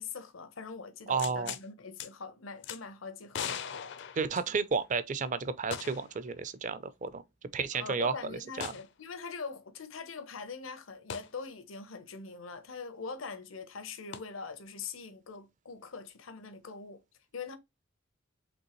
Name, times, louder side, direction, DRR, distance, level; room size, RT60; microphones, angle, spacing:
voice 1, 0.0-3.5 7.7-17.0 17.3-17.6, left 5 dB, 80° left, 0.9 m, -43 dB
voice 2, 1.1-1.5 4.2-7.2 7.5-8.7, right 5 dB, 40° right, 0.5 m, -32 dB
sound 1, 1.2-1.6 2.0-2.1 2.6-2.8 3.3-4.8 5.7-6.2 6.5-6.6 8.6-8.9 11.1-11.3 14.1-14.2, left 8 dB, 60° left, 0.5 m, -39 dB
5.2 x 3.2 x 3.0 m
head